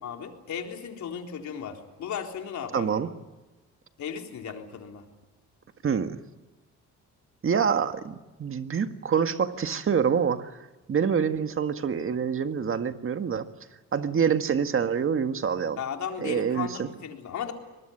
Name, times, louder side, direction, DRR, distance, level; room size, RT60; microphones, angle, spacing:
voice 1, 0.0-3.0 4.0-5.1 15.8-17.5, left 7 dB, 70° left, 3 dB, 3.9 m, -35 dB
voice 2, 2.7-3.1 5.8-6.2 7.4-10.5 10.9-13.5 13.9-15.8 16.2-16.9, right 7 dB, 45° right, 8 dB, 1.8 m, -26 dB
24.0 x 21.0 x 10.0 m, 1.1 s
cardioid pair, 90°, 30 cm